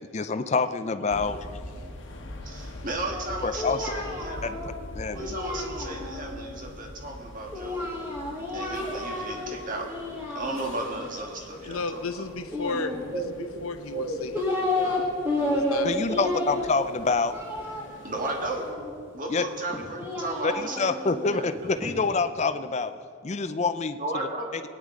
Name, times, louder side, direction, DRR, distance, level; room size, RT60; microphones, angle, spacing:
voice 1, 0.1-1.6 3.4-4.0 4.4-4.6 4.9-5.4 15.8-17.4 19.3-19.4 20.4-22.9 23.2-24.0, left 4 dB, 30° left, 11 dB, 0.4 m, -27 dB
sound 1, 1.1-18.7, left 1 dB, 60° left, 1.1 m, -44 dB
voice 2, 2.4-4.6 5.1-7.9 8.5-9.9 10.3-12.0 13.1-13.6 13.9-14.2 14.8-14.9 15.4-15.5 15.8-16.1 16.5-16.6 18.0-18.7 19.1-22.0 24.0-24.5, right 2 dB, 40° right, 1 dB, 1.6 m, -35 dB
Singing, 3.1-6.4 7.5-9.5 9.8-11.1 12.5-13.4 14.0-15.0 15.2-18.9 19.7-21.9, left 1 dB, 10° right, 2.0 m, -31 dB
voice 3, 11.4-14.4 14.7-15.1 15.4-16.0, left 3 dB, 90° left, 9 dB, 0.8 m, -34 dB
19.5 x 9.8 x 3.8 m, 2.2 s
head